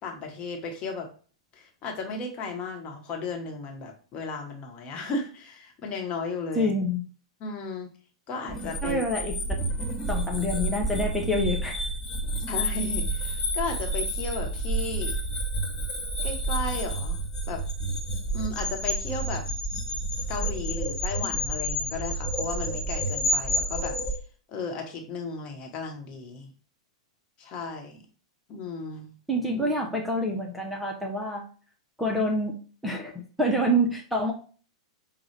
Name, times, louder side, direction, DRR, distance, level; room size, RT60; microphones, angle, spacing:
voice 1, 0.0-1.1 1.5-6.7 7.4-7.9 8.3-9.0 12.5-15.2 16.2-17.2 17.5-17.6 18.3-19.4 20.3-24.0 24.5-26.5 27.4-28.0 28.5-29.1, left 3 dB, 35° left, 2 dB, 1.1 m, -35 dB
voice 2, 6.6-7.0 8.8-9.6 10.1-11.8 29.3-31.5 32.0-32.6 32.8-33.1 33.4-34.3, equal, ahead, -2 dB, 0.7 m, -27 dB
sound 1, 8.5-24.2, right 1 dB, 15° left, 1.1 m, -29 dB
5.4 x 2.3 x 3.2 m, 0.40 s
hypercardioid pair, 105°, 3 cm